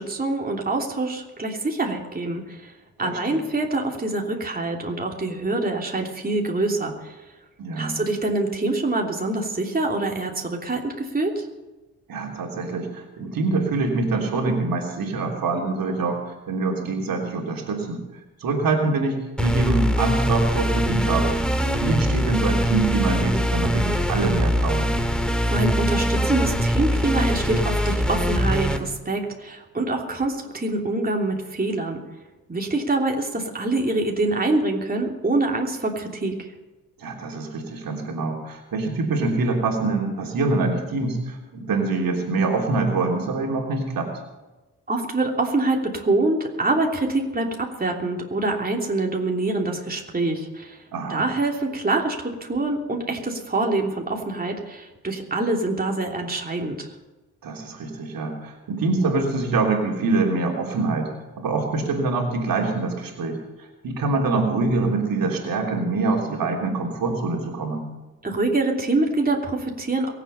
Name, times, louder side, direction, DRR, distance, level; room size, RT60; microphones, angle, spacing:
voice 1, 0.0-2.7 3.0-7.2 7.8-11.5 25.5-32.0 32.5-36.5 44.9-50.8 51.1-56.9 68.2-70.1, right 2 dB, 25° right, 0 dB, 3.1 m, -25 dB
voice 2, 3.0-3.4 7.6-8.0 12.1-18.0 18.4-21.4 21.8-24.9 37.0-44.1 50.9-51.3 57.4-61.1 61.4-67.8, right 3 dB, 60° right, 0 dB, 3.3 m, -25 dB
sound 1, 19.4-28.8, equal, ahead, 2.3 m, -22 dB
23.5 x 8.2 x 5.6 m, 1.1 s
hypercardioid pair, 45°, 38 cm